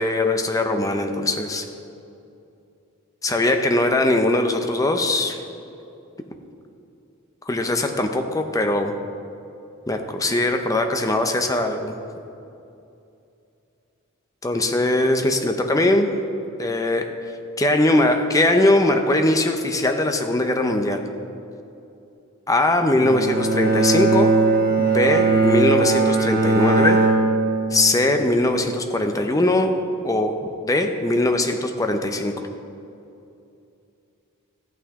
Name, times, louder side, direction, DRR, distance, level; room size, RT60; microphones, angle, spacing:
voice 1, 0.0-1.7 3.2-5.4 7.4-8.9 9.9-12.0 14.4-16.1 16.6-17.1 17.6-21.1 22.5-24.3 24.8-27.0 27.7-29.7 30.0-30.4 30.6-32.3, left 1 dB, 15° left, 5 dB, 0.6 m, -21 dB
Bowed string instrument, 22.9-28.2, right 3 dB, 45° right, 1.1 m, -19 dB
13.5 x 8.6 x 3.6 m, 2.7 s
head